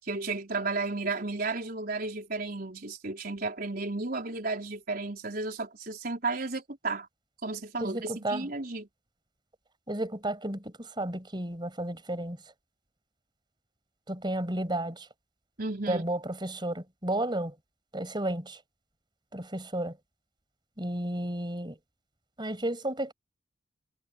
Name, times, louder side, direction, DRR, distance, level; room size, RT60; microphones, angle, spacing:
voice 1, 0.0-7.1 7.4-8.9 15.6-16.0, right 3 dB, 55° right, 4.6 m, -33 dB
voice 2, 7.8-8.5 9.9-12.4 14.1-15.0 15.9-17.5 17.9-18.6 19.3-19.9 20.8-21.8 22.4-23.1, right 1 dB, 25° right, 6.9 m, -32 dB
head